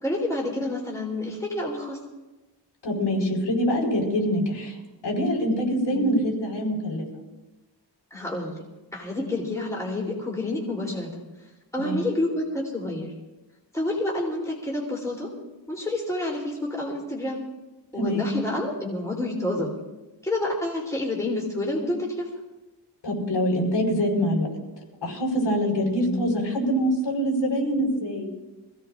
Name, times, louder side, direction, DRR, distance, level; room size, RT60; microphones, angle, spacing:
voice 1, 0.0-2.0 5.9-6.3 8.1-8.6 8.9-11.2 11.7-13.1 13.7-15.3 15.7-17.4 17.9-19.7 20.2-22.3 25.8-26.2, left 1 dB, 5° left, -3 dB, 3.3 m, -29 dB
voice 2, 2.8-4.7 5.0-7.0 11.8-12.0 18.0-18.3 23.0-24.5 25.0-28.3, equal, 75° left, -1 dB, 5.2 m, -24 dB
26.5 x 16.5 x 2.5 m, 1.1 s
wide cardioid pair, 180°, 43 cm